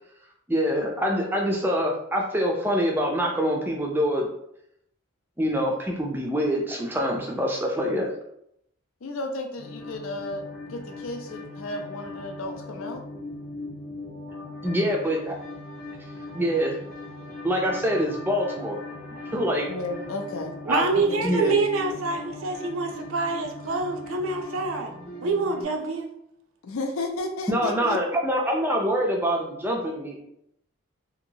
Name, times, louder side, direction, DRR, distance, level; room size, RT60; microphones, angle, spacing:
voice 1, 0.5-4.3 5.4-8.1 14.6-15.4 16.3-16.8 17.4-18.8 19.3-19.7 20.7-20.8 21.2-21.6 27.5-30.2, equal, 10° right, 0 dB, 0.4 m, -25 dB
voice 2, 9.0-10.4 10.7-13.0 19.7-20.5 20.9-21.4 26.6-28.0, left 2 dB, 75° left, 4 dB, 0.5 m, -33 dB
sound 1, 9.6-25.6, left 2 dB, 40° left, 0.7 m, -39 dB
voice 3, 20.7-24.9 25.2-26.1, right 3 dB, 75° right, 3 dB, 0.5 m, -26 dB
2.8 x 2.6 x 2.7 m, 0.75 s
head